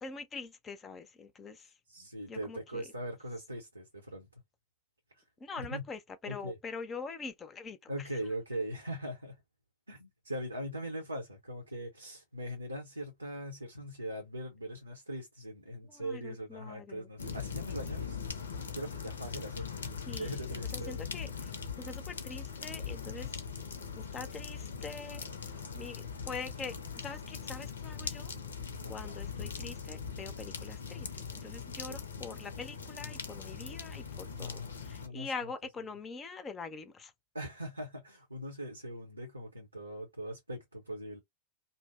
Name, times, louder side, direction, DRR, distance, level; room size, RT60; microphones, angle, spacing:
voice 1, 0.0-1.7 2.3-2.8 5.4-8.1 15.9-17.1 20.1-21.5 21.8-23.3 24.0-28.3 28.9-37.1, left 4 dB, 20° left, 0.5 m, -44 dB
voice 2, 1.9-4.3 5.6-5.9 6.2-6.6 7.9-9.4 9.9-18.3 18.7-19.8 20.1-21.1 28.8-29.2 31.9-32.0 34.2-35.5 37.3-41.2, right 1 dB, 85° right, 0.7 m, -41 dB
sound 1, 17.2-35.1, left 6 dB, 70° left, 0.6 m, -41 dB
2.6 x 2.0 x 3.4 m
figure-of-eight pair, 90°, 0 cm